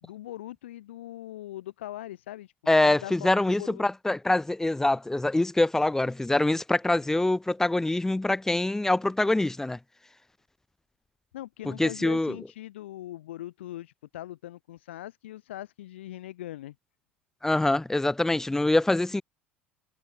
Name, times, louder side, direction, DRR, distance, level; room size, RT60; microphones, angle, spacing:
voice 1, 0.0-2.5 2.8-3.8 11.3-16.7, left 14 dB, 70° left, 2.3 m, -41 dB
voice 2, 2.7-9.8 11.6-12.4 17.4-19.2, left 2 dB, 5° left, 0.5 m, -24 dB
figure-of-eight pair, 70°, 7 cm